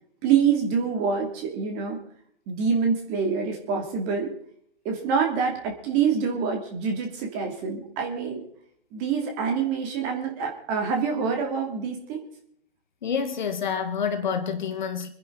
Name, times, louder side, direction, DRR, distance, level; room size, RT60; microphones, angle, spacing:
voice 1, 0.2-2.0 2.5-4.3 4.8-8.4 8.9-12.2, right 6 dB, 20° right, 2.8 m, -26 dB
voice 2, 13.0-15.1, left 6 dB, 45° left, 1.8 m, -28 dB
26.0 x 10.5 x 4.1 m
figure-of-eight pair, 150°, 33 cm